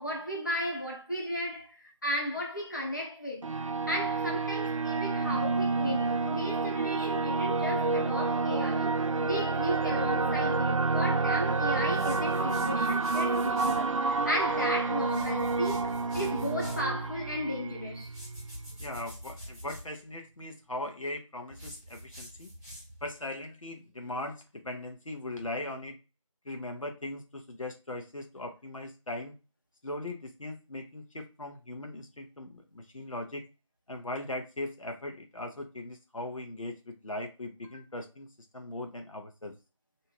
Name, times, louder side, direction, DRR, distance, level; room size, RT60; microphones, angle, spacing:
voice 1, 0.0-9.0 9.2-18.1, equal, 35° left, 1.0 m, -35 dB
sound 1, 3.4-18.8, right 3 dB, 75° right, 0.4 m, -29 dB
sound 2, 11.9-13.9 15.0-16.9 18.0-19.9 21.5-23.1, equal, 5° left, 1.2 m, -46 dB
voice 2, 18.8-22.5 23.0-26.0 26.4-29.3 29.8-33.4 33.9-38.3 38.5-39.5, left 1 dB, 75° left, 0.9 m, -39 dB
2.8 x 2.3 x 3.0 m
figure-of-eight pair, 175°, 17 cm